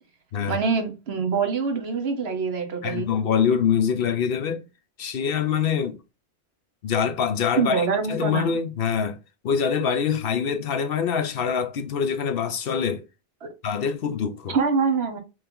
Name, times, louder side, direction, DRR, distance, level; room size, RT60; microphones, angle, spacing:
voice 1, 0.5-3.1 7.6-8.5 14.5-15.2, right 5 dB, 80° right, 1.2 m, -24 dB
voice 2, 2.8-4.6 5.0-6.0 6.8-9.2 9.4-13.0 13.6-14.6, left 7 dB, 65° left, 0.8 m, -24 dB
3.4 x 3.2 x 3.6 m
omnidirectional pair, 1.1 m